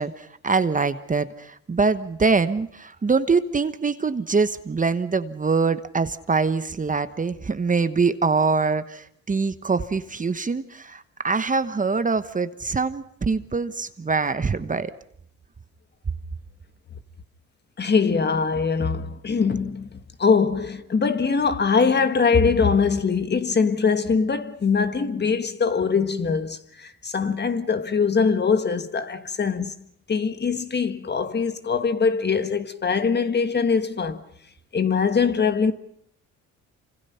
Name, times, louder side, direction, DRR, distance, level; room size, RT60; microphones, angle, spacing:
voice 1, 0.0-14.9, right 4 dB, 25° right, 1.2 m, -24 dB
voice 2, 17.8-29.7 30.1-34.2 34.7-35.7, left 5 dB, 35° left, 1.6 m, -22 dB
28.0 x 26.5 x 5.8 m
cardioid pair, 90°, 30 cm